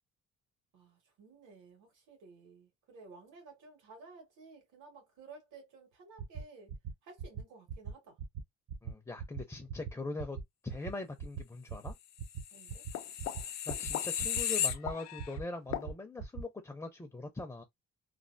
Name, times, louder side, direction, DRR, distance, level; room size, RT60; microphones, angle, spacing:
voice 1, 0.7-6.7 7.0-8.2 12.5-12.8, right 3 dB, 85° right, 1.8 m, -55 dB
sound 1, 6.2-6.4 6.7-6.9 7.2-7.4 7.7-7.9 8.2-8.4 8.7-8.9 9.2-9.4 9.7-9.9 10.2-10.4 10.7-10.9 11.2-11.4 11.7-11.9 12.2-12.4 12.7-12.9 13.2-13.4 13.7-13.9 14.2-14.4 14.7-14.9 15.2-15.4 15.7-15.9 16.2-16.4, right 7 dB, 60° right, 0.7 m, -40 dB
voice 2, 8.8-10.4 10.6-11.9 13.4-17.6, left 2 dB, 10° left, 0.4 m, -42 dB
sound 2, 12.4-15.3 15.7-15.9, left 10 dB, 65° left, 0.5 m, -35 dB
3.2 x 2.3 x 2.5 m
cardioid pair, 135°, 30 cm